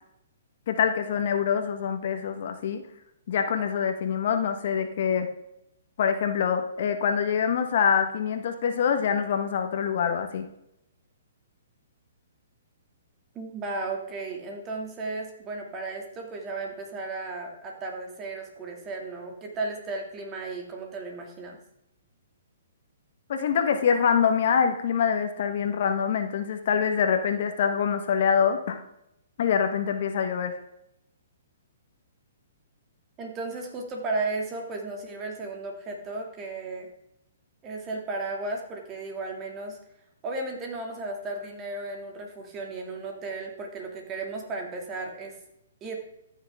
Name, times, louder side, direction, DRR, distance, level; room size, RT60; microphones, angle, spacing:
voice 1, 0.7-2.8 3.3-5.3 6.0-10.4 23.3-28.8 29.4-30.6, left 7 dB, 55° left, 7 dB, 1.3 m, -25 dB
voice 2, 13.3-21.6 33.2-36.9 37.6-39.8 40.2-45.4 45.8-46.0, right 3 dB, 25° right, 1 dB, 2.4 m, -34 dB
14.0 x 6.4 x 3.6 m, 0.81 s
hypercardioid pair, 130°, 0 cm